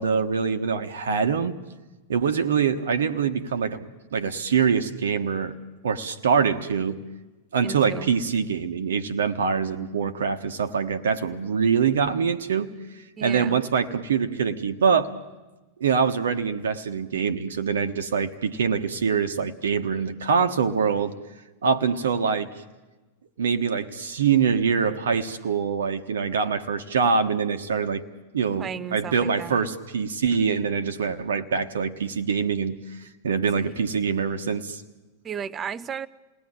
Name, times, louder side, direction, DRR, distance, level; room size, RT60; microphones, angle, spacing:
voice 1, 0.0-1.6 2.1-5.6 5.8-7.0 7.5-12.7 13.2-15.1 15.8-21.2 21.6-22.6 23.4-28.0 28.3-34.8, right 6 dB, 65° right, 7 dB, 1.3 m, -24 dB
voice 2, 7.6-8.1 13.2-13.6 28.6-29.6 33.5-33.7 35.2-36.1, right 7 dB, 25° right, 17 dB, 0.8 m, -34 dB
29.0 x 19.5 x 9.0 m, 1.1 s
figure-of-eight pair, 90°, 0 cm